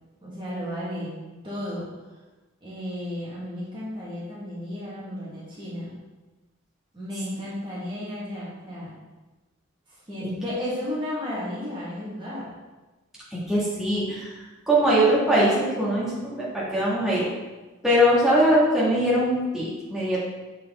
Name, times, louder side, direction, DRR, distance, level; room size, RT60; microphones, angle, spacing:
voice 1, 0.2-1.9 2.6-5.9 6.9-9.0 10.1-12.5, left 1 dB, 25° right, -8 dB, 1.7 m, -33 dB
voice 2, 13.3-14.3 14.7-17.3 17.8-20.2, equal, ahead, -9 dB, 1.8 m, -21 dB
7.2 x 4.5 x 3.6 m, 1.2 s
head